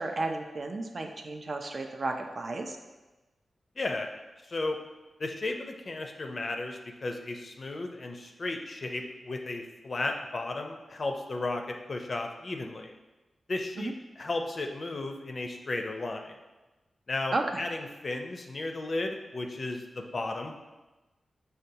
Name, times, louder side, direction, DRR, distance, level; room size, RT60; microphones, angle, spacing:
voice 1, 0.0-2.8 13.8-13.9 17.3-17.6, right 2 dB, 55° right, 4 dB, 0.4 m, -33 dB
voice 2, 3.8-4.1 4.5-4.8 5.2-12.9 13.5-16.3 17.1-20.6, left 2 dB, 50° left, 4 dB, 0.4 m, -34 dB
6.3 x 2.3 x 2.7 m, 1.1 s
cardioid pair, 65°, 0 cm